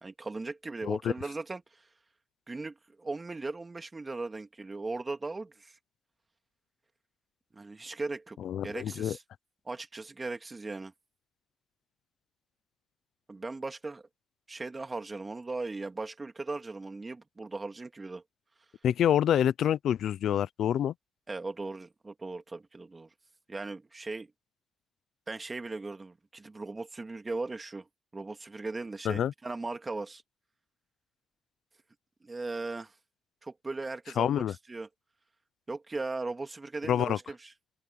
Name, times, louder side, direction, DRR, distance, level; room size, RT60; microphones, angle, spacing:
voice 1, 0.0-1.9 2.5-5.8 7.5-8.4 8.6-9.2 9.6-10.9 13.3-14.0 14.5-18.2 21.3-23.1 23.5-24.3 25.3-30.2 32.2-32.9 33.4-34.9 35.7-37.5, right 3 dB, 25° right, 2.4 m, -38 dB
voice 2, 8.4-9.2 18.8-20.9 29.0-29.3 34.2-34.5 36.9-37.2, left 10 dB, 70° left, 0.7 m, -27 dB
open air
cardioid pair, 90°, 0 cm